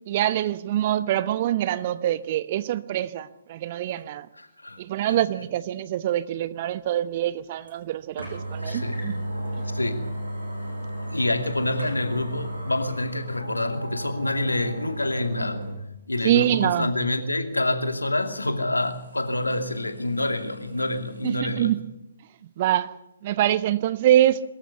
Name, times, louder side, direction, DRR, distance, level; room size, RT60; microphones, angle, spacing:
voice 1, 0.1-4.3 4.8-9.3 16.2-16.9 21.2-21.8 22.6-22.9 23.2-24.4, right 12 dB, 35° right, 1.0 m, -24 dB
voice 2, 4.4-5.2 8.6-9.1 9.7-10.1 11.1-15.7 16.1-21.7, left 2 dB, 80° left, 2.6 m, -27 dB
sound 1, 7.7-7.8 8.2-15.8 16.2-16.3 18.8-21.4, right 1 dB, 85° right, 7.6 m, -34 dB
23.5 x 13.5 x 8.2 m
figure-of-eight pair, 130°, 0 cm